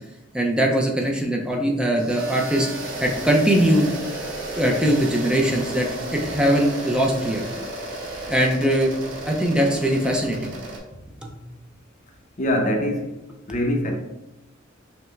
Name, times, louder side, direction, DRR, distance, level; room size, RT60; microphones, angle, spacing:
voice 1, 0.3-2.7 3.0-3.9 4.6-7.4 8.3-8.9 9.2-10.5 11.2-11.3, right 1 dB, 5° right, 0 dB, 0.5 m, -21 dB
sound 1, 2.0-10.8, right 1 dB, 80° right, 0.9 m, -33 dB
voice 2, 12.4-13.2 13.5-13.9, left 1 dB, 40° left, 2 dB, 0.7 m, -23 dB
5.5 x 2.1 x 3.1 m, 0.97 s
head